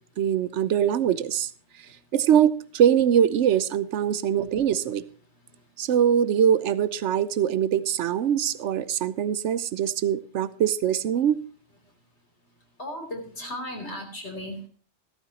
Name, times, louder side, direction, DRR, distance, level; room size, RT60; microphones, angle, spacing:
voice 1, 0.2-1.5 2.1-5.0 5.8-11.4, right 9 dB, 90° right, 16 dB, 1.0 m, -23 dB
voice 2, 12.8-14.7, left 1 dB, 80° left, 1 dB, 3.7 m, -35 dB
14.5 x 13.0 x 2.9 m, 0.42 s
omnidirectional pair, 1.2 m